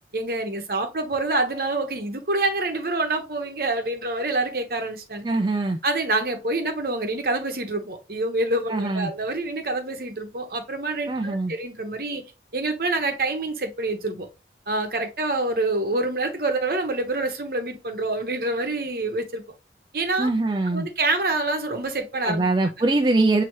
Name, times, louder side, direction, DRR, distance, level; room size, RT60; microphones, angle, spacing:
voice 1, 0.1-5.2 5.8-12.2 12.5-14.3 14.7-19.4 19.9-20.3 20.7-22.5, right 2 dB, 55° right, 0.9 m, -26 dB
voice 2, 5.2-5.8 8.7-9.1 11.1-11.5 20.2-20.9 22.2-23.4, right 2 dB, 25° right, 0.4 m, -22 dB
5.8 x 2.8 x 3.0 m
head